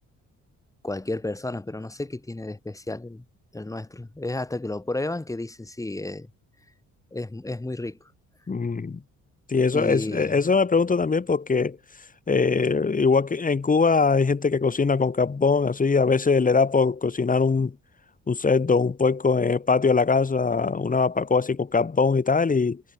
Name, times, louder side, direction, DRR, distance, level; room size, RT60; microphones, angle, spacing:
voice 1, 0.8-3.3 3.5-6.3 7.1-8.0 9.7-10.4, left 2 dB, 10° left, 1.8 m, -32 dB
voice 2, 8.5-9.0 9.5-11.8 12.3-17.7 18.3-22.8, left 4 dB, 25° left, 2.2 m, -22 dB
cardioid pair, 90°, 30 cm